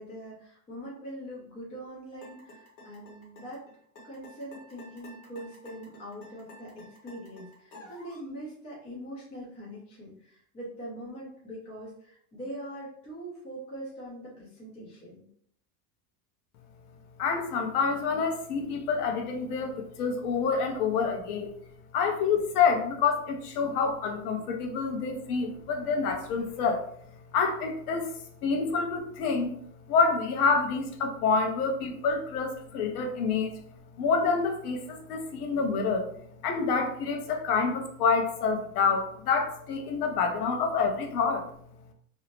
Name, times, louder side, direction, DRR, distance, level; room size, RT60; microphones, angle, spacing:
voice 1, 0.0-3.6 4.0-15.3, right 1 dB, 15° left, -6 dB, 0.6 m, -42 dB
sound 1, 2.2-8.3, left 1 dB, 50° left, 1.0 m, -51 dB
voice 2, 17.2-21.5 21.9-26.9 27.3-28.1 28.4-29.5 29.9-33.5 34.0-36.1 36.4-41.5, left 5 dB, 85° left, 4 dB, 0.8 m, -27 dB
2.7 x 2.0 x 2.9 m, 0.64 s
supercardioid pair, 170°, 44 cm